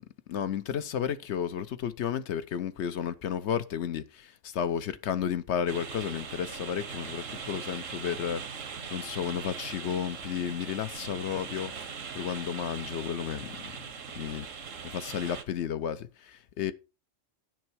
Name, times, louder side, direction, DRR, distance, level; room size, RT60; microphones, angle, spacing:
voice 1, 0.3-8.6 8.9-11.7 12.1-13.9 14.1-14.5 14.8-16.7, left 8 dB, 65° left, 0.9 m, -32 dB
sound 1, 5.7-15.4, right 6 dB, 85° right, 1.5 m, -40 dB
10.5 x 6.1 x 4.5 m
omnidirectional pair, 1.3 m